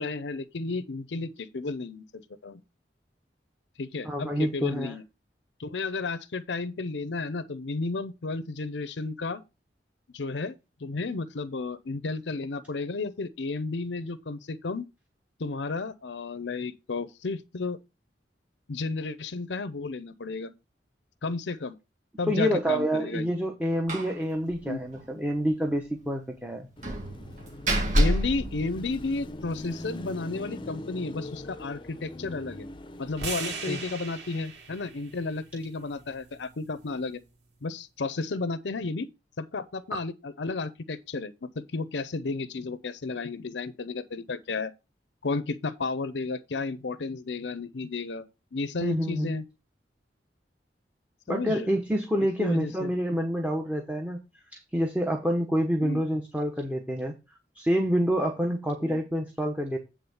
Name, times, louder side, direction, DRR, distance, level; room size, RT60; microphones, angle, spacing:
voice 1, 0.0-2.6 3.8-5.0 5.6-9.4 10.1-10.5 10.8-14.9 15.4-17.8 18.7-20.5 21.2-21.8 22.2-23.3 24.7-24.8 28.0-32.7 33.0-37.2 37.6-39.1 39.4-44.7 45.2-48.2 48.5-49.4 51.3-51.7 52.4-52.9 55.8-56.0 58.8-59.0, left 3 dB, 80° left, 0.6 m, -33 dB
voice 2, 4.0-5.0 22.3-26.7 33.7-33.8 48.8-49.3 51.3-54.2 54.5-57.1 57.5-59.8, equal, 10° right, 1.1 m, -27 dB
Slam, 23.9-24.2 24.5-24.6 24.9-25.0 26.8-29.4, equal, 45° right, 1.8 m, -27 dB
Car passing by / Traffic noise roadway noise / Engine, 26.8-34.1, left 1 dB, 30° left, 0.7 m, -42 dB
sound 1, 33.2-37.4, right 4 dB, 70° right, 2.8 m, -40 dB
8.8 x 3.7 x 7.0 m
head